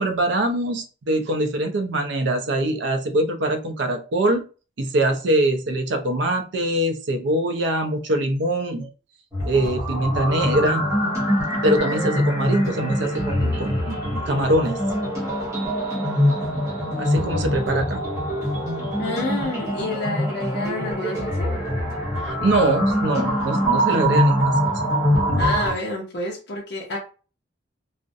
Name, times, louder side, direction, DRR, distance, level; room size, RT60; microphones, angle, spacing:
voice 1, 0.0-4.4 4.8-8.9 9.4-10.8 11.6-14.8 17.0-18.0 22.2-24.6 25.3-25.4, right 1 dB, 70° right, 6 dB, 0.5 m, -23 dB
sound 1, 9.3-25.7, equal, 15° right, 0.8 m, -24 dB
voice 2, 19.0-21.5 25.4-27.0, left 2 dB, 60° left, -4 dB, 0.6 m, -29 dB
2.4 x 2.0 x 2.5 m, 0.35 s
head